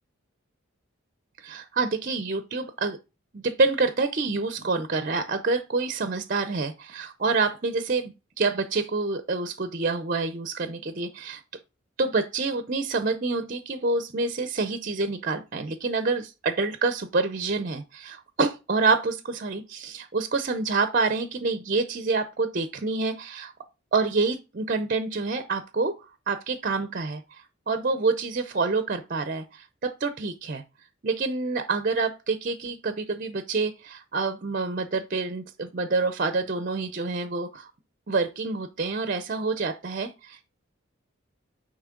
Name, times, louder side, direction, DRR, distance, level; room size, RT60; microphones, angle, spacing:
voice 1, 1.4-3.0 3.3-11.4 12.0-23.5 23.9-25.9 26.3-30.6 31.0-37.7 38.1-40.4, right 3 dB, 40° right, 0.6 m, -27 dB
9.2 x 3.2 x 3.7 m
head